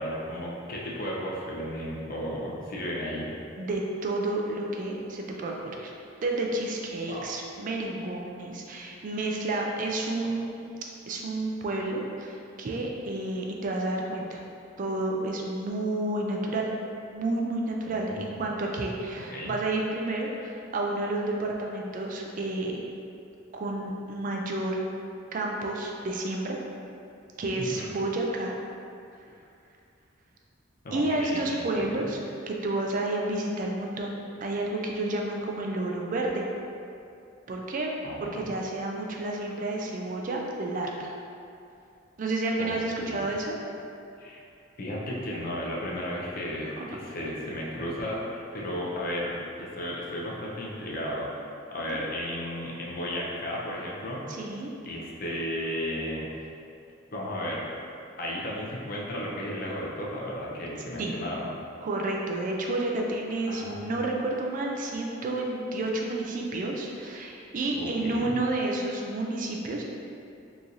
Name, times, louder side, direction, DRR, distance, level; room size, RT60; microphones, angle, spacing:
voice 1, 0.0-3.3 7.1-7.3 17.8-18.3 19.1-19.6 27.7-27.9 30.8-32.1 38.0-38.4 42.6-43.3 44.2-44.4 44.8-54.2 54.9-56.3 57.1-57.7 58.2-61.5 63.5-63.9 67.8-68.4, equal, 45° left, -4 dB, 0.5 m, -34 dB
voice 2, 3.6-5.9 6.2-10.7 11.1-14.4 14.8-16.7 17.1-22.8 23.5-24.8 25.3-26.6 27.4-28.6 30.9-32.2 32.5-36.5 37.5-37.9 38.2-41.1 42.2-43.6 51.9-52.0 54.3-54.7 61.0-61.1 61.8-69.8, right 2 dB, 40° right, 0 dB, 0.3 m, -30 dB
2.9 x 2.5 x 3.9 m, 2.6 s
head